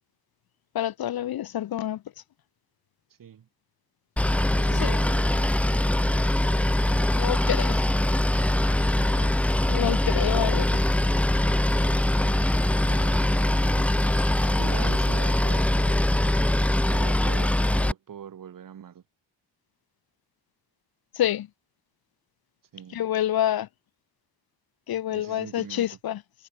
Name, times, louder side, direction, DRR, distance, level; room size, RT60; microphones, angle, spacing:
voice 1, 0.7-2.0 4.7-4.9 7.2-7.8 9.7-10.8 21.2-21.5 22.9-23.7 24.9-26.2, left 12 dB, 60° left, 1.0 m, -27 dB
Boat Water vehicle, 4.2-17.9, left 1 dB, 5° left, 0.4 m, -22 dB
voice 2, 4.5-5.6 8.9-9.5 12.2-14.0 14.6-16.0 16.9-19.0 22.7-23.1 25.1-25.9, right 9 dB, 50° right, 3.2 m, -42 dB
wide cardioid pair, 155°, 42 cm